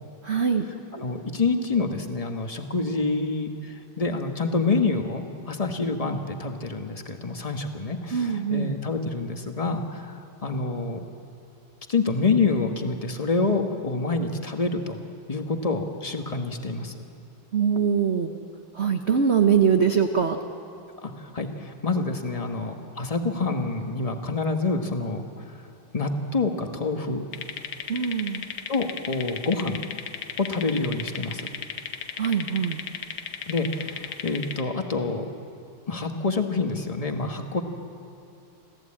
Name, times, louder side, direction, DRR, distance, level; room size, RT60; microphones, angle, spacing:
voice 1, 0.2-0.6 8.1-8.8 17.5-18.3 18.7-20.4 27.9-28.4 32.2-32.8, right 7 dB, 55° right, 5 dB, 0.7 m, -22 dB
voice 2, 0.9-11.0 11.9-15.0 15.3-16.9 21.0-25.3 25.9-27.2 28.7-29.8 30.4-31.5 33.5-35.3 35.9-37.6, left 3 dB, 25° left, 5 dB, 1.0 m, -27 dB
sound 1, 27.3-34.6, left 8 dB, 75° left, 1.8 m, -36 dB
27.5 x 14.5 x 8.7 m, 2.7 s
omnidirectional pair, 2.4 m